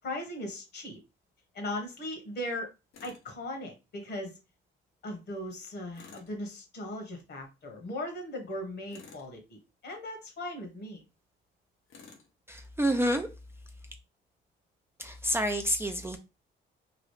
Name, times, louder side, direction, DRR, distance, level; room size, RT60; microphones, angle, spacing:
voice 1, 0.0-1.0 1.5-2.7 3.0-4.4 5.0-11.0, left 1 dB, 55° left, 4 dB, 1.2 m, -38 dB
Tools, 2.9-3.3 5.9-6.4 8.9-9.3 11.9-12.3, left 5 dB, 80° left, 0.8 m, -52 dB
voice 2, 12.5-13.3 15.0-16.2, equal, 10° right, 5 dB, 0.4 m, -28 dB
3.0 x 2.3 x 3.2 m, 0.27 s
cardioid pair, 90°, 20 cm